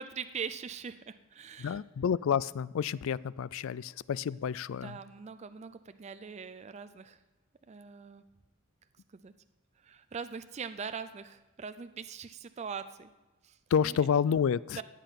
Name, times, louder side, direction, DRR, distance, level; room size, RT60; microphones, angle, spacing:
voice 1, 0.0-1.8 4.8-7.2 7.7-8.2 9.2-9.3 9.8-13.1 13.4-13.6 13.8-14.0 14.8-14.9, right 6 dB, 30° right, 11 dB, 0.4 m, -41 dB
voice 2, 1.6-5.0 13.7-14.8, left 7 dB, 65° left, 21 dB, 0.3 m, -29 dB
14.5 x 9.1 x 5.8 m, 1.1 s
head